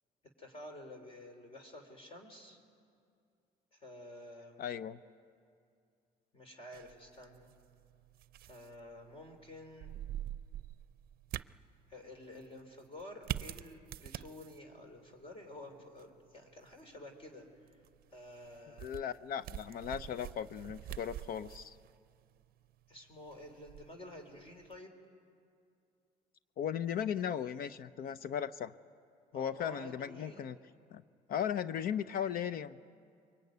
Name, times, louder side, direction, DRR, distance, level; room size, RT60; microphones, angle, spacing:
voice 1, 0.4-2.6 3.7-4.7 6.3-7.5 8.5-9.9 11.9-17.8 18.1-18.9 22.9-25.0 29.3-30.5, left 1 dB, 35° left, 4 dB, 3.9 m, -51 dB
voice 2, 4.6-5.0 18.8-21.8 26.6-28.7 29.3-30.6 30.9-31.0 31.3-32.8, left 9 dB, 60° left, 14 dB, 0.7 m, -37 dB
sound 1, 6.7-24.8, right 13 dB, 60° right, 0.6 m, -47 dB
26.0 x 23.0 x 9.4 m, 2.4 s
cardioid pair, 110°, 17 cm